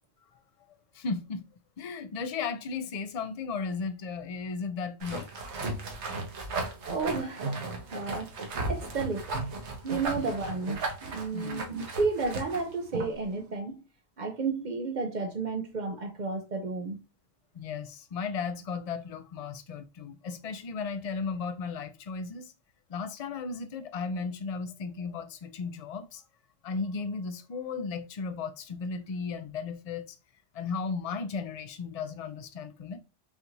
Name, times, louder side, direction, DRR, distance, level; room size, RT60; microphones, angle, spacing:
voice 1, 0.9-1.4 1.8-5.3 10.2-10.3 11.3-11.6 17.5-22.5 22.9-26.2 26.6-30.2 30.5-33.0, left 5 dB, 50° left, 0.4 m, -35 dB
sound 1, 5.0-13.2, right 3 dB, 70° right, 1.2 m, -35 dB
voice 2, 6.8-8.3 8.7-9.4 9.8-13.8 14.2-17.0, right 4 dB, 50° right, 0.6 m, -32 dB
5.5 x 2.5 x 3.1 m
omnidirectional pair, 1.2 m